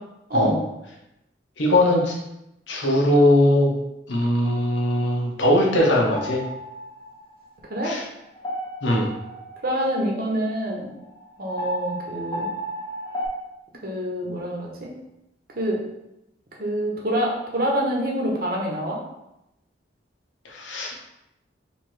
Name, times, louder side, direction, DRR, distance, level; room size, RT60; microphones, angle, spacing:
voice 1, 1.6-2.2 2.7-3.7 4.1-6.4 7.8-8.0 8.8-9.1 20.4-21.0, left 1 dB, 75° left, -1 dB, 0.9 m, -20 dB
sound 1, 6.2-13.3, equal, 20° left, 0.7 m, -35 dB
voice 2, 9.6-10.9 11.4-12.5 13.8-14.9 15.6-15.8 16.6-19.0, equal, 50° right, -1 dB, 0.9 m, -26 dB
3.3 x 2.9 x 4.6 m, 0.87 s
head